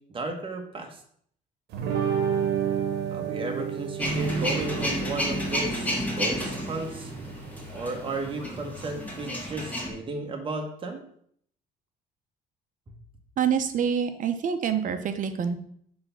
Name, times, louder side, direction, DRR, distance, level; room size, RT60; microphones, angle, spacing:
voice 1, 0.1-1.0 3.1-7.1 7.7-11.0, right 3 dB, 30° right, 3 dB, 1.3 m, -34 dB
sound 1, 1.7-9.4, right 8 dB, 80° right, 1.1 m, -32 dB
Male speech man speaking / Vehicle / Engine starting, 4.0-9.9, equal, 10° left, 1.9 m, -31 dB
voice 2, 13.4-15.6, right 7 dB, 50° right, 8 dB, 0.8 m, -26 dB
6.6 x 3.5 x 5.7 m, 0.65 s
cardioid pair, 110°, 17 cm